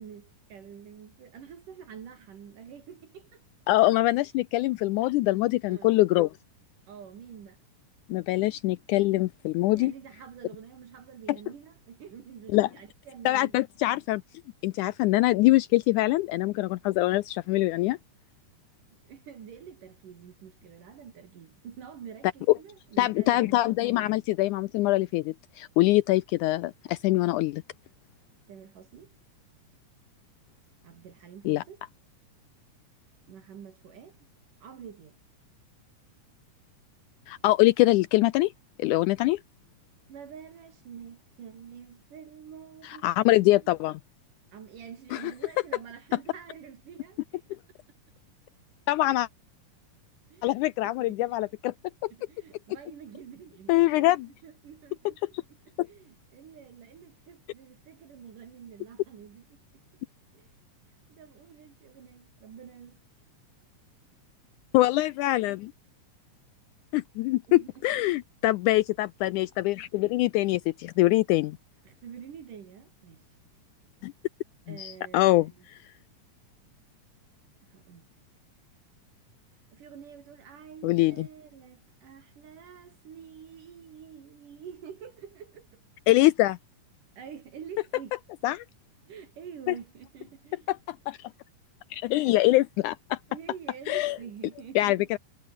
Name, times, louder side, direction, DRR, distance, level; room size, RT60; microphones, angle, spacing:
voice 1, 0.0-3.4 5.7-5.9 6.9-7.7 9.7-13.6 19.0-23.6 28.5-29.1 30.8-31.9 33.3-34.2 34.6-35.2 40.1-43.1 43.5-43.7 44.5-47.6 50.3-50.6 50.8-51.5 52.1-59.6 60.3-60.6 61.1-63.0 67.5-67.9 71.9-73.3 74.7-75.7 77.6-78.0 79.7-85.8 87.2-88.2 89.1-90.7 92.1-92.4 93.3-95.1, right 8 dB, 70° right, 4.1 m, -47 dB
voice 2, 3.7-6.3 8.1-9.9 12.5-12.7 13.3-14.2 14.6-18.0 23.0-27.6 31.5-31.6 37.3-38.5 38.8-39.4 42.8-44.0 45.1-45.3 48.9-49.3 50.4-51.7 52.0-52.1 53.7-54.3 55.8-55.9 64.7-65.7 66.9-71.6 74.0-74.1 74.7-75.5 80.8-81.3 86.1-86.6 88.4-88.6 90.7-91.3 91.9-93.2 93.9-94.2 94.8-95.2, left 18 dB, 80° left, 1.9 m, -24 dB
omnidirectional pair, 3.9 m